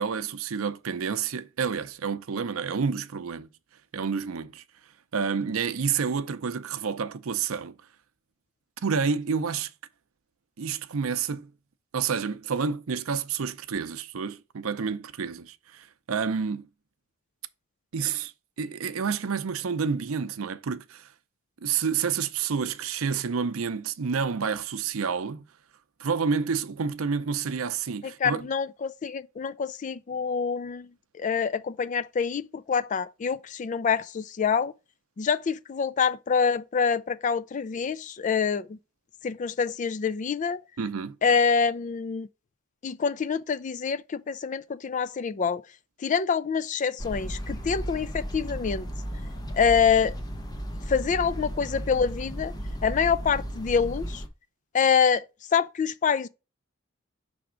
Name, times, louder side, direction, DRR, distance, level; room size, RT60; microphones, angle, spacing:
voice 1, 0.0-3.5 3.9-4.6 5.1-7.7 8.8-9.7 10.6-11.5 11.9-16.7 17.9-18.3 18.6-21.1 21.6-25.4 26.0-28.5 40.8-41.2, right 6 dB, 85° right, 0.6 m, -29 dB
voice 2, 28.2-30.9 31.2-34.7 35.2-38.8 39.2-40.6 41.2-42.3 42.8-45.6 46.0-48.9 49.5-50.1 50.9-52.5 52.8-54.2 54.7-55.2 55.5-56.3, left 6 dB, 35° left, 0.3 m, -26 dB
sound 1, 47.0-54.3, equal, 20° left, 0.8 m, -35 dB
6.0 x 3.5 x 5.0 m
head